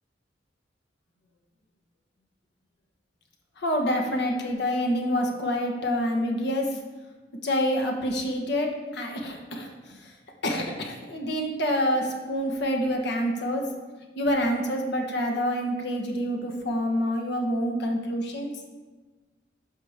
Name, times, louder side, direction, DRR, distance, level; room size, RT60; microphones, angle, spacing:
voice 1, 3.6-6.7 7.4-9.7 10.4-13.6 14.2-18.5, equal, 65° left, 2 dB, 1.3 m, -27 dB
12.5 x 5.2 x 3.6 m, 1.3 s
head